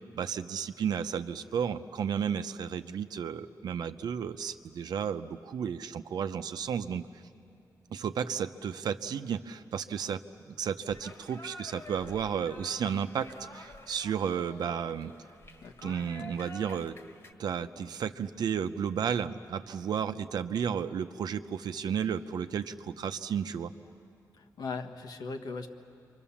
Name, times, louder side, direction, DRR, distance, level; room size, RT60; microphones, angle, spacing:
voice 1, 0.1-7.1 7.9-10.2 10.5-15.1 15.8-17.0 17.4-23.7, right 7 dB, 75° right, 9 dB, 0.7 m, -33 dB
sound 1, 10.9-17.3, left 1 dB, 40° left, 1.7 m, -49 dB
voice 2, 15.6-16.0 24.4-25.7, left 4 dB, 70° left, 6 dB, 1.5 m, -39 dB
29.0 x 24.5 x 7.2 m, 2.5 s
wide cardioid pair, 140°, 7 cm